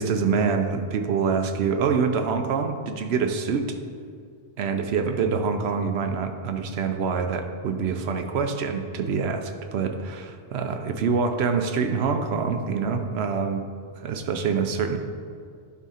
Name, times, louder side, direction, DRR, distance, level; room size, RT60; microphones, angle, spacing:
voice 1, 0.0-3.8 4.6-13.7 14.0-15.0, right 5 dB, 70° right, 6 dB, 0.8 m, -25 dB
11.0 x 3.6 x 4.2 m, 2.2 s
omnidirectional pair, 1.2 m